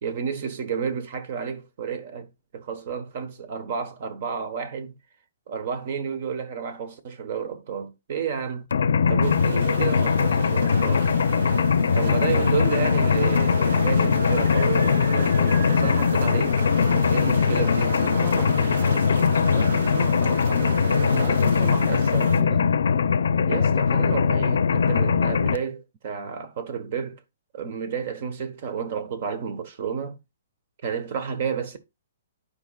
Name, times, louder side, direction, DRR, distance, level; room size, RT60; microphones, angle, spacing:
voice 1, 0.0-5.0 5.5-8.7 9.1-11.1 11.9-16.6 17.1-18.0 21.9-22.3 23.5-27.2 27.5-30.2 30.8-31.8, right 7 dB, 45° right, 1.3 m, -31 dB
Mechanisms, 8.7-25.6, left 6 dB, 80° left, 0.6 m, -21 dB
sound 1, 9.2-22.4, right 4 dB, 75° right, 1.4 m, -34 dB
voice 2, 18.0-22.6, right 7 dB, 25° right, 0.6 m, -38 dB
11.5 x 5.0 x 2.4 m
hypercardioid pair, 165°, 0 cm